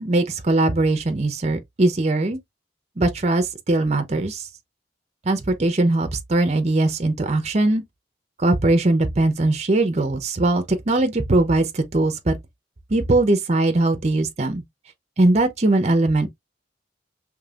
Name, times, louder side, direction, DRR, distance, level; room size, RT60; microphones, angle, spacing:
voice 1, 0.0-2.4 3.0-4.4 5.3-7.8 8.4-12.3 12.9-14.6 15.2-16.3, right 2 dB, 40° right, 0.8 m, -20 dB
5.2 x 3.3 x 2.4 m
head